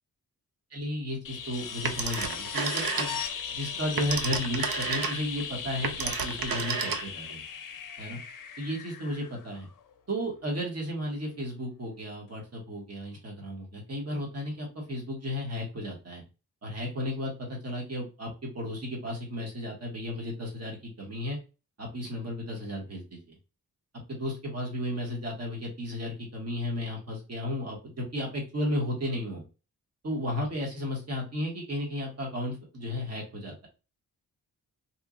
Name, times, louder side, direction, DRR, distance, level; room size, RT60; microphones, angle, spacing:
voice 1, 0.7-3.2 3.5-7.4 8.0-8.2 8.6-9.7 10.1-16.2 16.6-21.4 21.8-23.2 23.9-29.4 30.0-33.7, left 1 dB, 40° right, -1 dB, 1.3 m, -34 dB
sound 1, 1.2-9.9 12.3-12.4, left 7 dB, 60° left, 0.5 m, -38 dB
Telephone, 1.9-3.4 3.8-7.3, right 5 dB, 65° right, 0.6 m, -31 dB
2.9 x 2.5 x 3.7 m, 0.31 s
wide cardioid pair, 175°, 37 cm